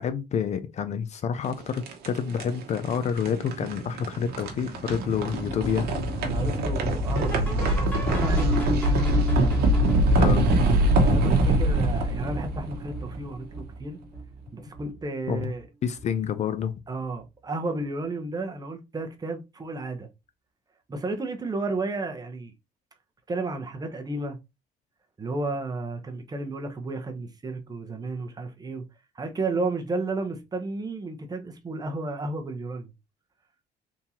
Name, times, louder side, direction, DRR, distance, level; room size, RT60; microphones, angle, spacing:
voice 1, 0.0-5.9 10.1-10.5 15.3-15.5 15.8-16.7, left 7 dB, 45° left, 0.4 m, -28 dB
sound 1, 1.4-13.5, right 1 dB, 70° right, 0.9 m, -24 dB
sound 2, 5.3-14.4 14.7-15.0 15.3-15.4 16.0-16.1 16.6-16.7, right 3 dB, 10° left, 1.5 m, -33 dB
voice 2, 6.3-9.1 11.0-14.0 14.5-15.7 16.9-20.1 20.9-22.5 23.3-24.4 25.2-28.8 29.1-32.9, right 2 dB, 20° right, 0.8 m, -32 dB
3.6 x 2.8 x 2.8 m
cardioid pair, 110°, 17 cm